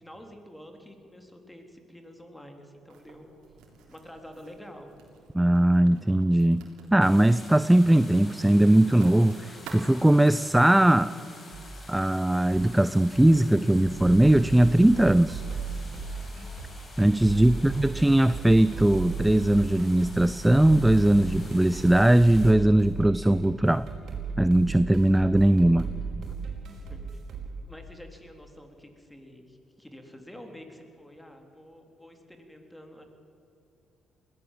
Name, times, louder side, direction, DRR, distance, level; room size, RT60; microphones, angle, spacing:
voice 1, 0.0-3.3 3.9-4.9 17.3-18.0 26.9-27.2 27.6-33.1, equal, 5° left, 4 dB, 3.8 m, -48 dB
Writing, 2.9-10.8, right 4 dB, 75° right, 3.6 m, -50 dB
voice 2, 5.3-11.1 11.9-15.4 17.0-23.9 24.4-25.9, right 1 dB, 10° right, 15 dB, 0.5 m, -20 dB
sound 1, 7.0-22.5, left 2 dB, 40° left, 5.9 m, -49 dB
sound 2, 11.5-27.5, right 5 dB, 60° right, 5.0 m, -37 dB
21.0 x 16.5 x 7.6 m, 2.7 s
hypercardioid pair, 55°, 0 cm